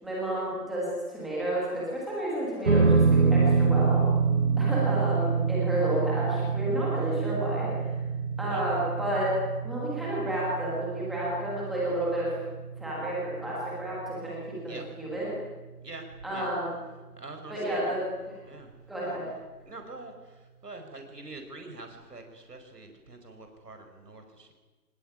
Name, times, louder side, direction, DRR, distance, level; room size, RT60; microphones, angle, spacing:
voice 1, 0.0-4.0 4.6-7.7 8.4-9.3 9.6-12.3 12.8-15.3 16.2-16.7 17.5-18.0 18.9-19.2, right 1 dB, ahead, -7 dB, 1.4 m, -31 dB
sound 1, 2.6-15.2, right 5 dB, 50° right, 6.1 m, -27 dB
voice 2, 17.2-17.8 18.5-18.7 19.0-19.2 19.7-20.1 20.6-24.5, right 2 dB, 75° right, 5 dB, 5.2 m, -44 dB
25.5 x 20.5 x 9.8 m, 1.2 s
figure-of-eight pair, 170°, 48 cm